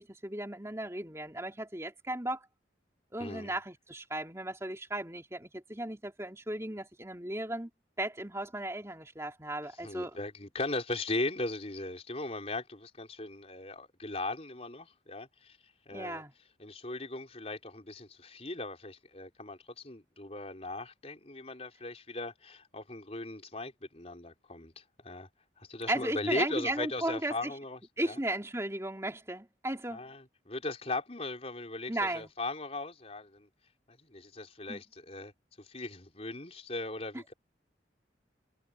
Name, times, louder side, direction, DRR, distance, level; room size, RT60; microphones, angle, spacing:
voice 1, 0.0-2.5 3.1-7.7 8.0-10.1 15.9-16.3 25.9-27.5 28.0-30.0 31.9-32.3 34.7-34.8, right 1 dB, 15° right, 3.2 m, -35 dB
voice 2, 3.2-3.5 9.8-15.6 15.9-16.2 16.6-25.3 25.6-28.2 29.9-33.5 33.9-35.3 35.6-37.3, left 2 dB, 35° left, 4.5 m, -38 dB
head